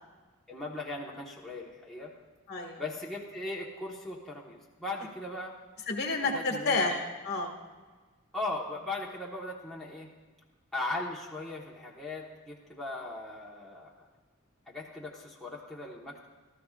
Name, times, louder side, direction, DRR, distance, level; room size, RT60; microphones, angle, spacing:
voice 1, 0.5-2.1 2.8-5.6 6.3-6.9 8.3-10.1 10.7-14.1 14.7-16.3, left 2 dB, ahead, -4 dB, 1.4 m, -38 dB
voice 2, 2.5-2.8 5.9-7.5, left 3 dB, 50° left, 0 dB, 2.0 m, -30 dB
26.5 x 13.5 x 2.5 m, 1.3 s
head